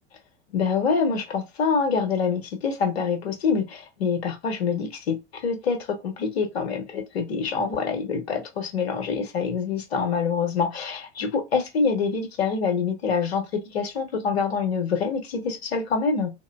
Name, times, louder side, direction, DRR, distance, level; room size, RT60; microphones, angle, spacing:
voice 1, 0.5-16.3, left 5 dB, 65° left, 1.0 m, -26 dB
2.9 x 2.6 x 2.3 m
figure-of-eight pair, 80°, 33 cm